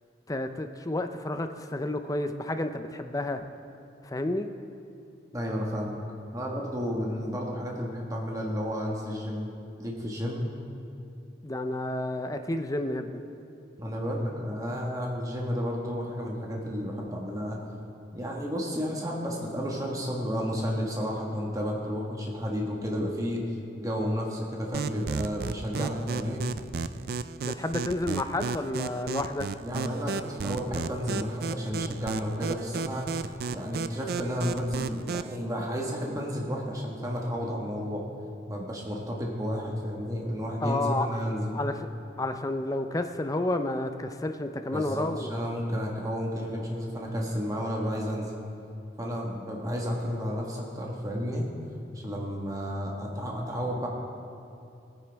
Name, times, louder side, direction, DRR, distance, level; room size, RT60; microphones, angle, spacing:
voice 1, 0.3-3.4 4.0-4.5 11.4-13.2 27.4-29.5 40.6-41.1 41.5-41.9 42.2-45.5, left 2 dB, 20° left, 7 dB, 0.5 m, -30 dB
voice 2, 5.3-6.0 6.3-9.5 9.8-10.5 13.8-17.6 18.1-23.4 23.8-26.4 29.6-33.1 33.5-38.0 38.5-41.5 44.7-48.3 49.0-51.5 51.9-53.9, equal, 20° right, -2 dB, 1.5 m, -32 dB
sound 1, 24.7-35.4, right 5 dB, 55° right, 0.4 m, -34 dB
21.0 x 9.3 x 3.5 m, 2.7 s
head